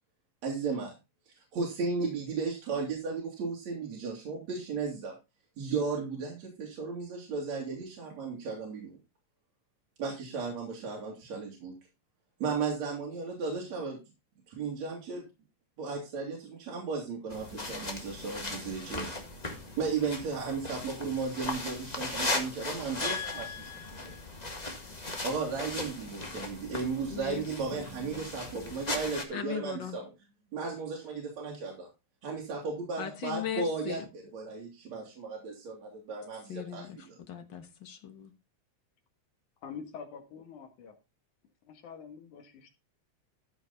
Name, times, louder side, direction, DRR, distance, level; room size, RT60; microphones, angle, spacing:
voice 1, 0.4-0.9 1.5-5.2 5.6-9.0 10.0-11.7 12.4-14.0 14.5-15.3 15.8-19.3 19.8-23.5 25.2-30.1 30.5-31.9 32.2-37.2, right 4 dB, 65° right, 3.8 m, -35 dB
sound 1, 17.3-29.2, left 2 dB, 20° left, 1.1 m, -38 dB
voice 2, 23.0-24.2 27.1-27.5 27.7-27.9 29.3-30.0 33.0-34.0 36.5-38.3, left 9 dB, 55° left, 1.4 m, -39 dB
voice 3, 39.6-41.0 41.7-42.7, left 6 dB, 90° left, 3.2 m, -45 dB
14.0 x 5.9 x 4.0 m
omnidirectional pair, 3.4 m